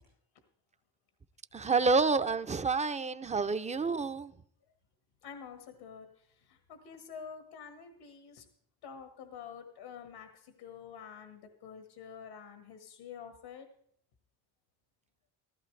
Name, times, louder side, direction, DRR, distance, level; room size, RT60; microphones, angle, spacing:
voice 1, 1.5-4.3, right 4 dB, 15° right, 0.5 m, -28 dB
voice 2, 5.2-8.4 8.8-13.7, left 7 dB, 85° left, 1.7 m, -48 dB
15.0 x 14.5 x 3.3 m
cardioid pair, 90°, 45 cm